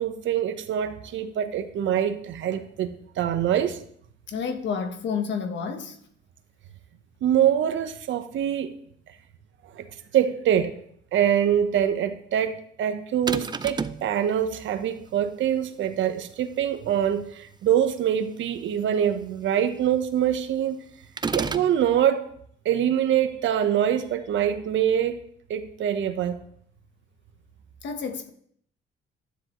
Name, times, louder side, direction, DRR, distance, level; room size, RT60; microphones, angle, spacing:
voice 1, 0.0-3.8 7.2-8.7 9.7-9.9 10.1-10.7 11.1-20.8 21.3-22.3 22.6-25.2 25.5-26.4, right 9 dB, 75° right, 1.0 m, -24 dB
voice 2, 4.3-6.0 27.8-28.3, left 6 dB, 65° left, 1.2 m, -30 dB
sound 1, 13.3-14.1 21.2-21.7, right 4 dB, 20° right, 0.5 m, -29 dB
12.5 x 10.5 x 3.1 m
cardioid pair, 90°, 20 cm